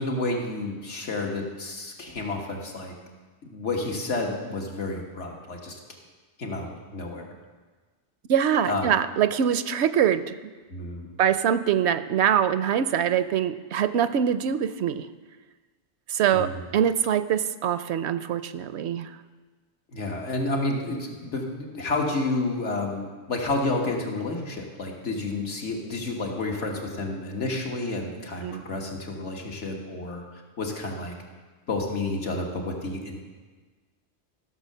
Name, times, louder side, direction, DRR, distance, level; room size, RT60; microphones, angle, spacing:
voice 1, 0.0-2.9 3.4-5.8 6.4-7.4 8.6-8.9 10.7-11.1 16.3-16.6 19.9-31.1 31.7-33.2, left 2 dB, 85° left, 1 dB, 1.9 m, -30 dB
voice 2, 8.3-10.3 11.2-15.1 16.1-19.1 28.4-28.6, right 9 dB, 75° right, 13 dB, 0.8 m, -24 dB
14.5 x 6.6 x 6.6 m, 1.4 s
omnidirectional pair, 1.2 m